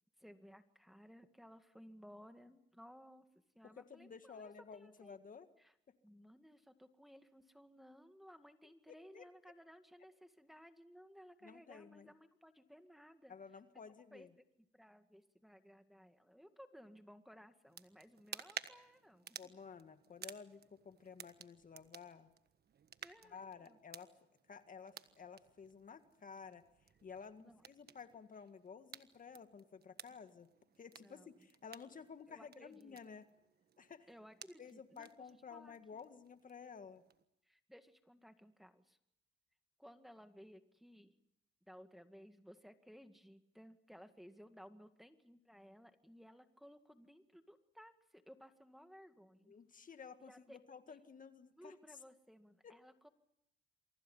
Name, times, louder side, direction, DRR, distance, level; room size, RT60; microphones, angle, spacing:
voice 1, 0.2-3.2 3.5-5.2 5.6-5.7 6.0-13.3 14.1-14.4 14.7-19.5 23.0-23.8 27.4-27.6 31.0-31.5 32.3-33.0 34.1-36.0 37.4-39.0 39.8-41.1 41.6-49.5 50.3-50.6 50.9-51.0 51.6-53.1, equal, ahead, 7 dB, 2.0 m, -59 dB
voice 2, 3.6-5.5 8.9-9.3 11.4-12.1 13.3-14.3 19.4-22.3 23.2-24.1 24.5-26.6 27.0-30.5 30.8-33.3 33.8-34.1 34.6-37.0 49.5-51.7 52.6-52.8, left 6 dB, 40° left, 9 dB, 1.8 m, -53 dB
sound 1, 17.7-37.2, right 8 dB, 55° right, 1.4 m, -56 dB
28.5 x 24.0 x 5.6 m, 0.79 s
cardioid pair, 90°, 20 cm